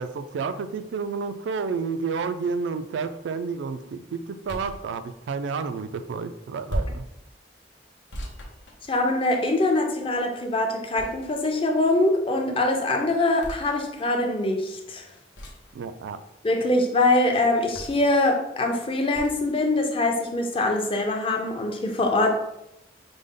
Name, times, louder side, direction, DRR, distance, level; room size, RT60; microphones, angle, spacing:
voice 1, 0.0-7.1 15.7-16.2, right 5 dB, 85° right, 11 dB, 0.3 m, -30 dB
sound 1, 4.4-4.8 6.7-7.1 8.1-9.3 10.9-11.5 13.4-13.7 15.3-15.7 17.7-18.1 19.1-19.4, equal, 80° left, 0.8 m, -35 dB
voice 2, 8.9-15.0 16.4-22.4, left 2 dB, 30° left, 3 dB, 0.5 m, -23 dB
5.0 x 2.1 x 3.6 m, 0.84 s
head